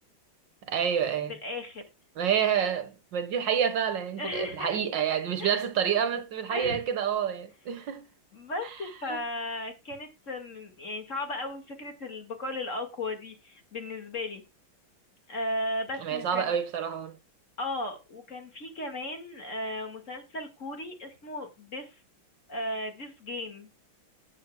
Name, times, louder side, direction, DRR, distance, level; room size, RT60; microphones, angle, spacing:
voice 1, 0.6-1.3 2.2-8.0 9.1-9.2 16.0-17.1, right 8 dB, 70° right, 1.8 m, -28 dB
voice 2, 1.4-1.8 4.2-4.7 5.4-5.6 6.5-6.8 8.3-14.4 15.3-16.6 17.6-22.0 22.5-23.7, left 1 dB, 40° left, 2.3 m, -36 dB
17.0 x 7.5 x 2.3 m
omnidirectional pair, 2.1 m